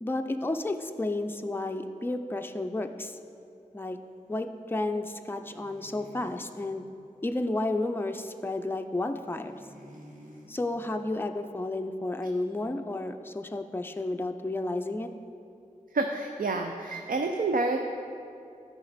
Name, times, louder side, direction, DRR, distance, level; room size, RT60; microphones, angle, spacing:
voice 1, 0.0-3.2 3.7-4.0 4.3-6.9 7.2-9.6 10.5-15.1, left 2 dB, 15° left, 6 dB, 0.5 m, -32 dB
sound 1, 5.4-6.5 9.2-10.5, equal, 65° right, 1.6 m, -50 dB
voice 2, 15.9-17.8, right 3 dB, 85° right, 4 dB, 0.5 m, -28 dB
13.0 x 5.0 x 4.1 m, 2.6 s
wide cardioid pair, 45°, 14 cm